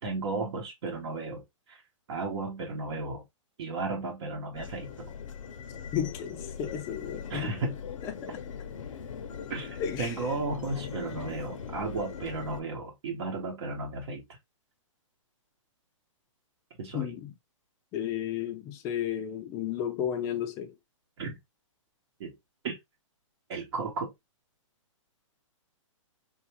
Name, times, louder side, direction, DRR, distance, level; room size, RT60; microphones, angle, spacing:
voice 1, 0.0-1.8 2.1-3.2 3.6-5.1 7.3-7.8 9.5-14.4 16.8-17.1 21.2-21.3 22.2-22.3 22.6-22.8 23.5-24.1, right 3 dB, 55° right, 0.9 m, -34 dB
sound 1, 4.5-12.6, left 6 dB, 75° left, 0.6 m, -41 dB
voice 2, 5.9-7.5 8.0-8.2 9.8-10.1 16.9-17.3 17.9-20.7, left 9 dB, 15° left, 0.4 m, -33 dB
3.5 x 2.5 x 2.9 m
hypercardioid pair, 155°, 17 cm